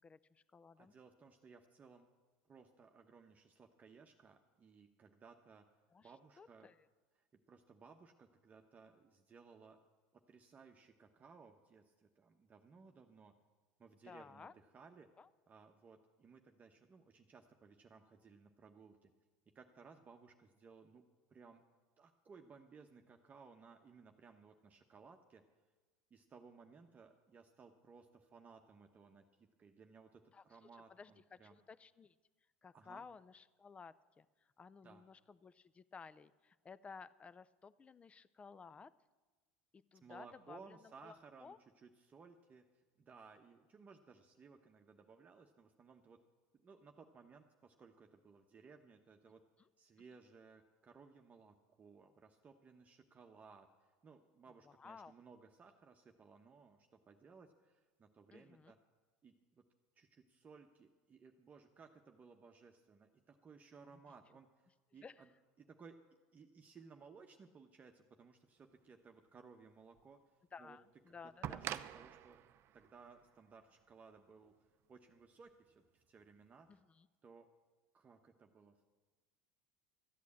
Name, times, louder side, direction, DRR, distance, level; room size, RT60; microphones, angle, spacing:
voice 1, 0.0-0.9 5.9-6.1 6.4-6.7 14.0-14.5 15.2-15.3 30.3-30.4 31.0-31.1 31.7-32.1 32.6-34.3 34.6-38.9 39.7-40.8 41.0-41.6 54.6-55.1 58.3-58.7 65.0-65.2 70.5-71.6 76.7-77.1, left 5 dB, 20° left, 17 dB, 0.5 m, -55 dB
voice 2, 0.8-2.1 2.4-5.7 6.0-6.7 7.2-9.8 10.1-13.3 13.8-15.1 15.5-19.1 19.5-21.0 21.3-21.6 22.0-25.4 26.1-31.6 32.7-33.0 34.8-35.0 40.0-42.7 43.0-46.2 46.5-49.4 49.8-58.8 59.2-59.6 60.0-65.3 65.6-66.0 66.3-70.2 70.6-70.8 71.1-72.4 72.7-76.8 77.2-77.5 77.9-78.9, right 5 dB, 30° right, 4 dB, 1.0 m, -60 dB
sound 1, 70.0-70.1 71.4-74.3 75.5-75.6, right 11 dB, 50° right, 0.6 m, -46 dB
13.5 x 8.4 x 8.4 m, 1.3 s
supercardioid pair, 100°, 5 cm